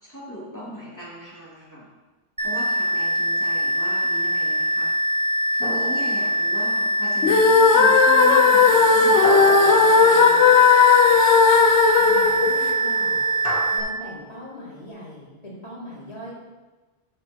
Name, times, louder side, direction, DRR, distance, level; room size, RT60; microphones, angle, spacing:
voice 1, 0.0-1.9 2.4-4.9 5.5-10.7, equal, 15° left, -8 dB, 3.2 m, -38 dB
sound 1, 2.4-13.8, right 2 dB, 5° right, 1.0 m, -23 dB
sound 2, 5.6-6.8 9.2-10.9 13.4-13.6, left 1 dB, 55° left, 1.6 m, -32 dB
sound 3, 7.2-13.4, left 6 dB, 85° left, 0.9 m, -16 dB
voice 2, 11.9-13.2 13.7-16.3, left 1 dB, 35° left, -8 dB, 3.0 m, -40 dB
12.0 x 6.8 x 3.1 m, 1.2 s
omnidirectional pair, 1.1 m